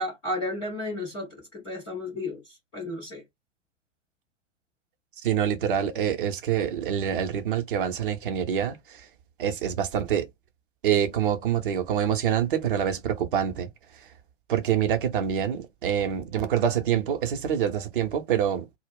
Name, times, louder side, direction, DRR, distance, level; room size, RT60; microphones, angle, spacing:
voice 1, 0.0-2.4 2.7-3.2, left 1 dB, 10° left, 0.3 m, -32 dB
voice 2, 5.2-9.0 9.4-10.3 10.8-13.7 14.5-18.7, right 9 dB, 40° right, 0.6 m, -26 dB
2.2 x 2.0 x 3.5 m
figure-of-eight pair, 110°, 39 cm